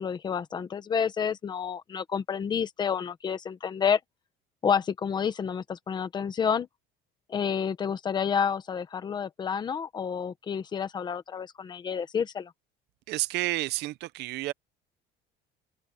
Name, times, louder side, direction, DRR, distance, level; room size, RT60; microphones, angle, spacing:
voice 1, 0.0-4.0 4.6-6.7 7.3-12.5, left 7 dB, 20° left, 1.0 m, -29 dB
voice 2, 13.1-14.5, right 18 dB, 60° right, 0.7 m, -30 dB
cardioid pair, 180°, 20 cm